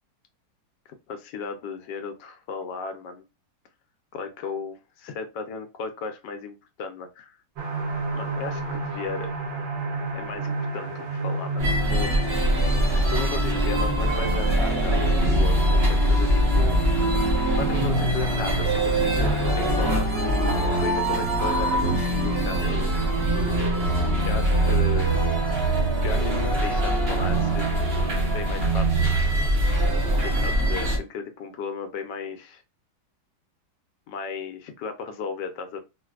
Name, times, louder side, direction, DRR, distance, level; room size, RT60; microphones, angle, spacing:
voice 1, 1.1-3.2 4.1-7.4 8.1-9.3 10.1-12.1 12.9-16.8 17.6-22.9 24.3-25.1 26.0-27.6 28.3-29.0 30.2-32.6 34.1-35.8, left 5 dB, 75° left, 7 dB, 1.0 m, -35 dB
sound 1, 7.6-21.0 21.5-21.6 22.0-22.1, right 2 dB, 70° right, 1.5 m, -33 dB
sound 2, 11.6-31.0, right 1 dB, 40° right, 0.9 m, -22 dB
4.0 x 2.5 x 2.3 m, 0.26 s
omnidirectional pair, 2.3 m